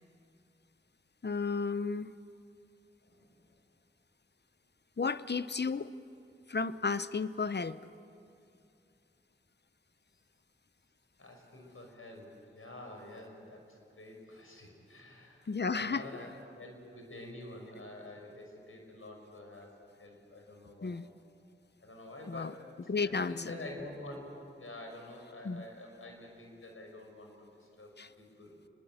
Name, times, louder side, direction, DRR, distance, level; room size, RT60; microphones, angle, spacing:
voice 1, 1.2-2.2 5.0-5.9 6.5-7.8 15.5-16.1 20.8-21.1 22.3-22.5 22.9-23.4 25.4-25.7 28.0-28.1, left 4 dB, 55° left, 14 dB, 0.9 m, -33 dB
voice 2, 3.0-3.4 11.2-16.3 16.6-19.7 20.0-21.0 21.8-22.5 23.0-24.3 24.6-27.5 27.8-27.9 28.2-28.6, left 1 dB, 85° left, 1 dB, 6.0 m, -48 dB
27.5 x 22.0 x 8.9 m, 2.6 s
cardioid pair, 40°, 21 cm